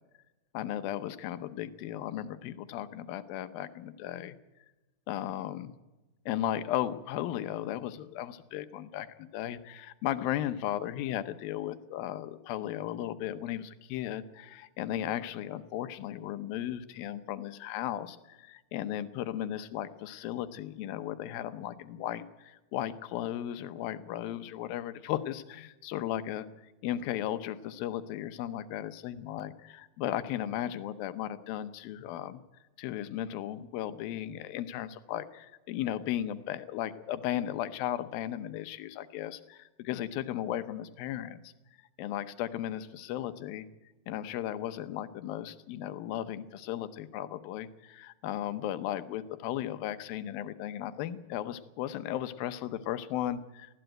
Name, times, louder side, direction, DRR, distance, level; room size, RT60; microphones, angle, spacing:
voice 1, 0.5-4.4 5.1-5.7 6.3-26.5 26.8-32.4 32.8-41.5 42.0-43.7 44.1-53.8, left 12 dB, 85° left, 12 dB, 2.7 m, -36 dB
20.0 x 14.5 x 9.0 m, 1.1 s
omnidirectional pair, 4.1 m